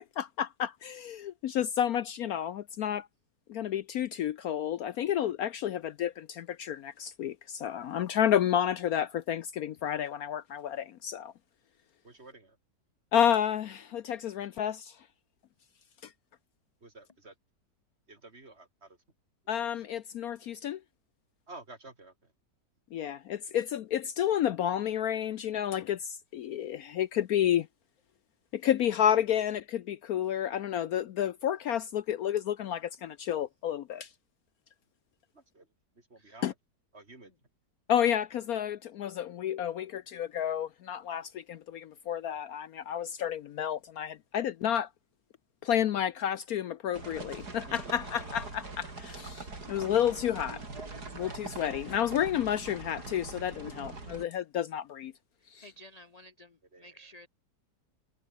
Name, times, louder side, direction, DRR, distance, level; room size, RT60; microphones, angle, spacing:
voice 1, 0.0-3.1 3.5-11.3 13.1-15.0 16.0-16.1 19.5-20.8 22.9-27.7 28.5-34.1 36.4-36.5 37.9-44.9 45.6-50.6 51.1-55.1 55.5-55.7, left 10 dB, 65° left, 1.1 m, -30 dB
voice 2, 12.0-12.6 16.8-17.3 18.1-19.0 21.5-22.1 35.3-35.7 36.1-36.5 36.9-37.3 47.7-47.9 56.7-57.1, right 2 dB, 35° right, 3.6 m, -51 dB
sound 1, 46.9-54.2, right 3 dB, 65° right, 5.0 m, -43 dB
voice 3, 55.6-57.3, equal, 40° left, 0.6 m, -53 dB
omnidirectional pair, 1.8 m